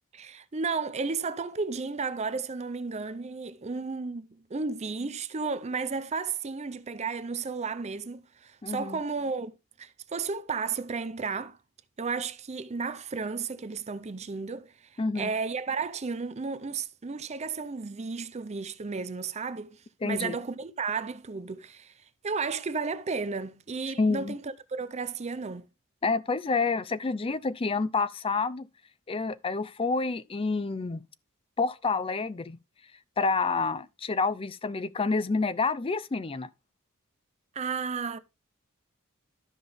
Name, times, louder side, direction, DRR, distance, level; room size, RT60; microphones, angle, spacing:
voice 1, 0.1-9.5 9.8-11.6 12.0-21.9 22.2-25.7 37.5-38.2, right 4 dB, 30° right, 0.5 m, -33 dB
voice 2, 8.6-9.0 15.0-15.3 20.0-20.4 24.0-24.3 26.0-28.7 29.1-31.0 31.6-32.6 33.2-36.5, left 4 dB, 25° left, 0.4 m, -28 dB
12.5 x 5.4 x 3.4 m
head